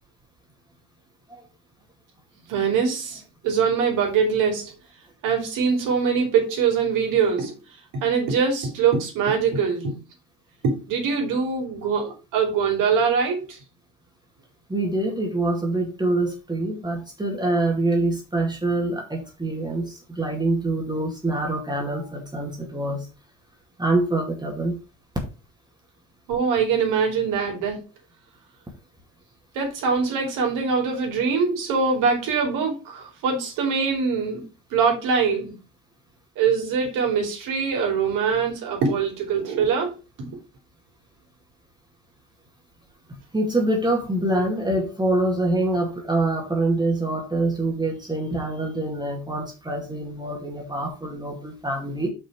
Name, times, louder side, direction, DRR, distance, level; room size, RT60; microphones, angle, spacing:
voice 1, 2.5-4.7 5.2-7.5 7.9-9.9 10.6-13.6 26.3-27.8 29.5-34.4 34.7-35.5 36.4-40.4, right 6 dB, 55° right, 2.9 m, -23 dB
voice 2, 14.7-23.1 23.8-24.8 43.3-52.1, right 2 dB, 10° right, 2.3 m, -25 dB
5.8 x 5.6 x 4.8 m
figure-of-eight pair, 55°, 38 cm